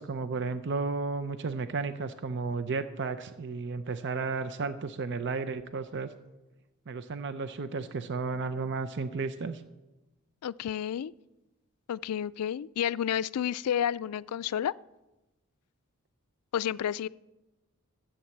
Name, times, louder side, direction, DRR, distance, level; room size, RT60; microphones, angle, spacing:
voice 1, 0.0-6.1 6.9-9.6, right 4 dB, 55° right, 0.6 m, -33 dB
voice 2, 10.4-11.1 11.9-14.7 16.5-17.1, left 9 dB, 80° left, 0.3 m, -30 dB
14.0 x 8.7 x 7.3 m
head